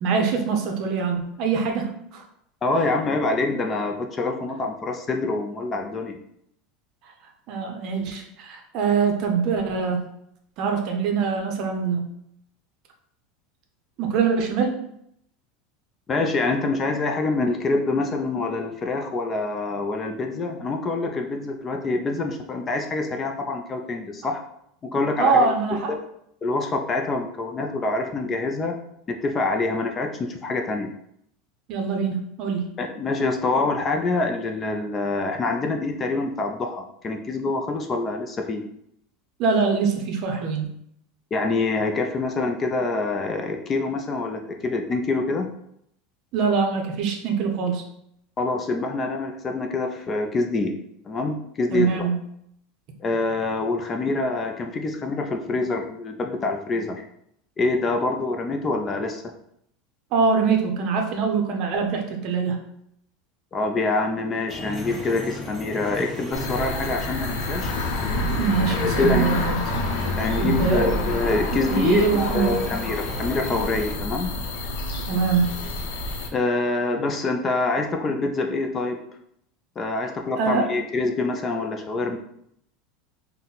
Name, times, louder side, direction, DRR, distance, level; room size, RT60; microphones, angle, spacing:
voice 1, 0.0-2.2 2.8-2.9 7.5-10.0 10.6-12.0 14.0-14.8 25.2-25.9 31.7-32.7 39.4-40.7 46.3-47.8 51.7-52.2 60.1-62.6 68.4-69.6 70.4-71.0 71.5-72.5 75.1-75.5 80.4-80.7, right 5 dB, 45° right, 3 dB, 0.6 m, -23 dB
voice 2, 2.6-6.2 16.1-24.4 24.9-25.5 25.9-26.0 26.4-28.8 29.1-30.9 32.8-38.6 41.3-45.5 48.4-50.8 51.1-52.1 53.0-57.0 57.6-59.2 63.5-67.7 68.8-69.4 70.2-74.3 76.3-79.0 79.8-82.2, left 3 dB, 20° left, 4 dB, 0.3 m, -25 dB
sound 1, 64.5-74.0, left 2 dB, 5° left, 0.9 m, -37 dB
sound 2, 66.3-76.3, left 2 dB, 75° left, 0.6 m, -28 dB
4.1 x 2.1 x 3.9 m, 0.73 s
supercardioid pair, 155°, 0 cm